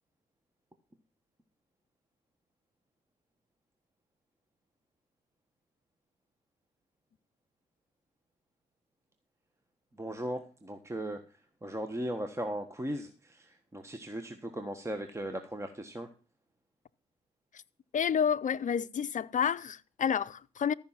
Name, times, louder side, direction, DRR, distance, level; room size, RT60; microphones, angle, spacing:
voice 1, 10.0-11.2 11.6-16.1, right 1 dB, 15° right, 1.3 m, -37 dB
voice 2, 17.9-20.7, left 7 dB, 40° left, 0.6 m, -29 dB
14.0 x 5.6 x 7.3 m
cardioid pair, 90°, 20 cm